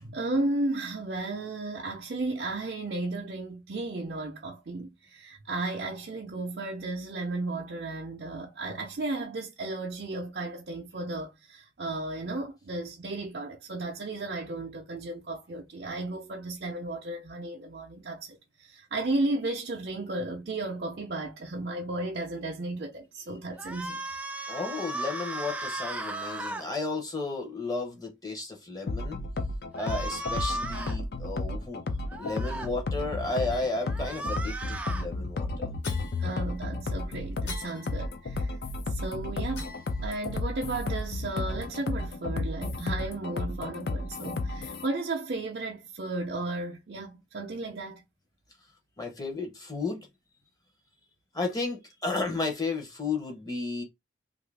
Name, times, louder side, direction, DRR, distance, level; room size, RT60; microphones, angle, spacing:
voice 1, 0.0-24.0 36.2-38.6 38.9-39.7 40.0-48.0, right 2 dB, 55° right, 0.5 m, -34 dB
sound 1, 23.6-26.6 29.8-31.0 32.1-32.7 33.8-35.1, right 2 dB, 10° right, 0.3 m, -35 dB
voice 2, 24.5-29.2 29.8-31.8 32.2-35.7 49.0-50.1 51.3-53.8, left 3 dB, 20° left, 0.7 m, -33 dB
sound 2, 28.9-44.9, left 2 dB, 60° left, 0.4 m, -33 dB
sound 3, 33.5-34.2 35.8-36.9 37.4-38.6 39.5-40.5, left 4 dB, 80° left, 1.2 m, -45 dB
2.7 x 2.5 x 3.3 m
head